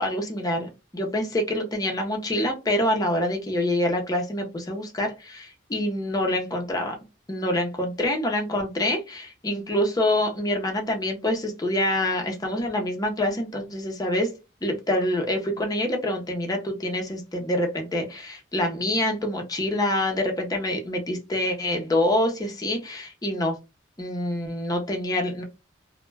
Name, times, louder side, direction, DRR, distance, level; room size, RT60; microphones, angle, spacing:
voice 1, 0.0-7.0 7.3-14.3 14.6-23.6 24.0-25.4, left 1 dB, 20° left, 2 dB, 0.5 m, -26 dB
2.1 x 2.1 x 3.2 m, 0.27 s
head